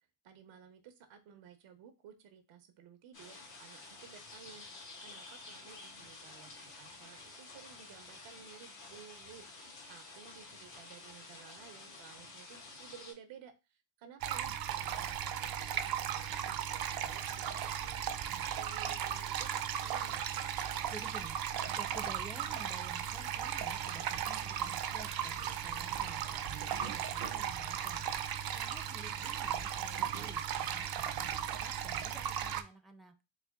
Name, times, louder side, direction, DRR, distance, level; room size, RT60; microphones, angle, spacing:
voice 1, 0.2-20.5 29.9-30.3, right 8 dB, 90° right, 8 dB, 0.9 m, -56 dB
sound 1, 3.1-13.1, left 3 dB, 80° left, 2.0 m, -51 dB
sound 2, 14.2-32.6, right 9 dB, 55° right, 0.5 m, -36 dB
voice 2, 20.9-21.4 21.7-26.2 26.6-28.1 28.5-33.2, right 1 dB, ahead, 7 dB, 0.5 m, -52 dB
4.2 x 2.2 x 3.4 m, 0.26 s
cardioid pair, 85°, 44 cm